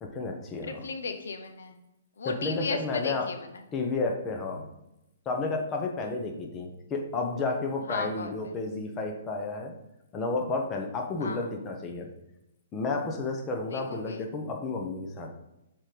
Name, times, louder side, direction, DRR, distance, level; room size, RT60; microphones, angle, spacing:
voice 1, 0.0-0.8 2.2-3.3 3.7-4.7 5.2-9.7 10.1-12.1 12.7-15.3, left 3 dB, 20° left, 2 dB, 1.0 m, -31 dB
voice 2, 0.6-1.8 2.2-3.6 7.9-8.5 11.2-11.5 13.7-14.3, left 4 dB, 80° left, 7 dB, 0.9 m, -36 dB
7.1 x 3.9 x 5.1 m, 0.89 s
hypercardioid pair, 150°, 0 cm